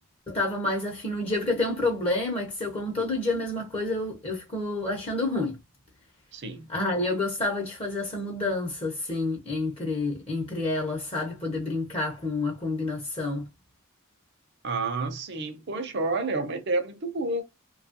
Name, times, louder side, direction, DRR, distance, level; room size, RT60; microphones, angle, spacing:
voice 1, 0.3-5.6 6.7-13.5, left 2 dB, 25° left, 0.8 m, -29 dB
voice 2, 6.3-6.7 14.6-17.4, right 3 dB, 50° right, 0.7 m, -29 dB
2.9 x 2.3 x 2.7 m
head